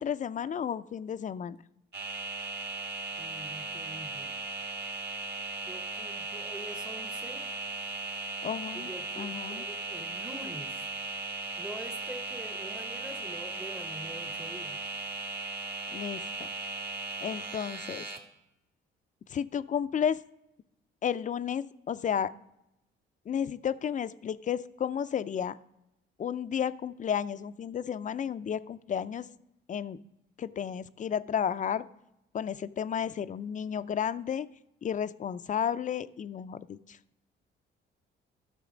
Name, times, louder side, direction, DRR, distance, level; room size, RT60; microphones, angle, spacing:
voice 1, 0.0-1.6 8.4-8.9 9.2-9.6 15.9-16.5 17.2-18.1 19.3-20.2 21.0-22.3 23.3-25.6 26.2-29.3 29.7-30.0 30.4-31.8 32.3-34.5 34.8-37.0, left 8 dB, 40° left, 0.4 m, -32 dB
sound 1, 1.9-18.2, right 3 dB, 55° right, 1.5 m, -37 dB
voice 2, 3.2-4.4 5.6-7.5 8.7-10.8 11.6-14.9, right 1 dB, 5° right, 0.7 m, -45 dB
12.5 x 6.3 x 5.0 m
cardioid pair, 90°, 20 cm